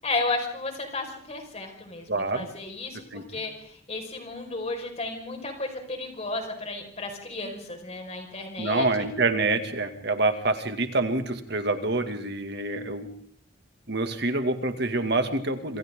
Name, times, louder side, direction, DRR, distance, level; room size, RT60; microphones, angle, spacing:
voice 1, 0.0-8.9, left 3 dB, 35° left, 3 dB, 5.3 m, -33 dB
voice 2, 2.1-2.5 3.1-3.2 8.6-13.1 13.9-15.8, right 2 dB, 55° right, 7 dB, 2.3 m, -26 dB
27.5 x 26.5 x 3.8 m, 0.63 s
head